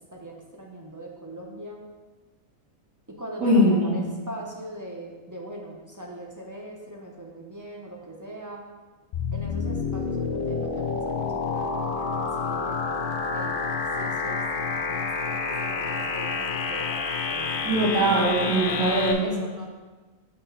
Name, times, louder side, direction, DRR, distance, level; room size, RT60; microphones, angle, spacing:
voice 1, 0.1-1.8 3.1-8.6 9.3-13.5 14.0-17.8 19.2-19.7, right 1 dB, 20° right, -1 dB, 0.7 m, -41 dB
voice 2, 3.4-4.0 17.6-19.3, right 1 dB, 85° right, -12 dB, 2.6 m, -21 dB
sound 1, 9.1-19.1, left 4 dB, 60° left, 0.6 m, -29 dB
6.0 x 5.5 x 4.2 m, 1.3 s
omnidirectional pair, 1.4 m